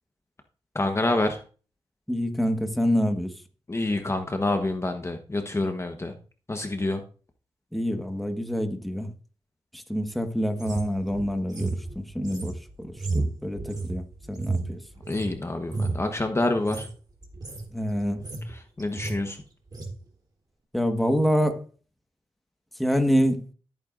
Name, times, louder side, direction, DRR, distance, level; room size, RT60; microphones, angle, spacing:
voice 1, 0.7-1.4 3.7-6.1 6.5-7.0 15.1-16.9 18.5-19.4, left 2 dB, 25° left, 1.2 m, -27 dB
voice 2, 2.1-3.3 7.7-9.1 9.7-14.8 17.7-18.2 20.7-21.6 22.8-23.4, equal, ahead, 1.5 m, -26 dB
sound 1, 10.6-15.3 15.6-16.1 16.6-16.9 17.2-17.7 18.0-18.5 18.8-19.2 19.7-19.9, right 3 dB, 40° right, 3.3 m, -31 dB
14.0 x 8.9 x 2.6 m
cardioid pair, 75°, 11 cm